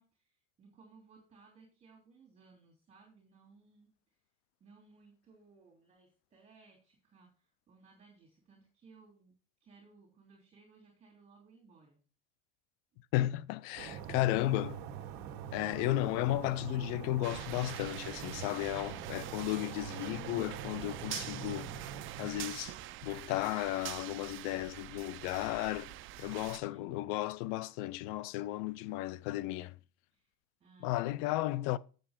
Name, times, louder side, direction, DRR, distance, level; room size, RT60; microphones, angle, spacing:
voice 1, 0.0-4.2 4.6-9.3 9.6-12.0 26.1-26.8 28.7-29.0 30.1-30.3 30.6-31.4, right 4 dB, 20° right, 2.9 m, -62 dB
voice 2, 13.1-14.8 15.5-21.7 22.2-22.7 23.0-25.9 26.2-29.8 30.8-31.8, left 16 dB, 70° left, 0.6 m, -34 dB
sound 1, 13.8-22.7, right 8 dB, 65° right, 1.6 m, -44 dB
sound 2, 17.2-26.6, right 15 dB, 45° right, 0.6 m, -45 dB
8.0 x 7.7 x 4.3 m
cardioid pair, 145°, 29 cm